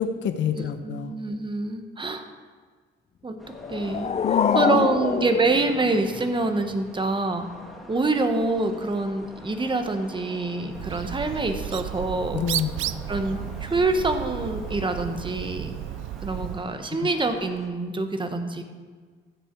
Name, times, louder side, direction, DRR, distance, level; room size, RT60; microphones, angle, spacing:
voice 1, 0.0-1.1 4.2-4.9 12.3-12.8, left 8 dB, 65° left, 9 dB, 0.8 m, -27 dB
voice 2, 0.5-2.2 3.2-3.4 3.7-4.2 4.5-7.5 7.9-12.4 13.1-15.8 16.2-18.6, right 2 dB, 25° right, 6 dB, 1.2 m, -26 dB
sound 1, 3.4-17.7, equal, ahead, 1.8 m, -46 dB
sound 2, 3.5-6.5, left 7 dB, 35° left, 0.4 m, -26 dB
Bird, 10.7-16.7, right 13 dB, 80° right, 0.4 m, -33 dB
14.5 x 6.7 x 4.6 m, 1.6 s
cardioid pair, 90°, 20 cm